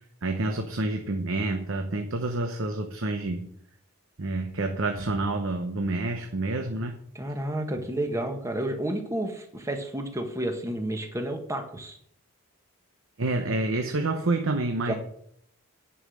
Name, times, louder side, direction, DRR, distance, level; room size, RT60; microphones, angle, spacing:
voice 1, 0.2-3.5 4.2-7.0 13.2-14.9, right 2 dB, 65° right, 5 dB, 0.9 m, -28 dB
voice 2, 7.1-12.0 14.8-14.9, right 1 dB, 15° right, 5 dB, 1.3 m, -31 dB
9.8 x 5.6 x 6.3 m, 0.67 s
head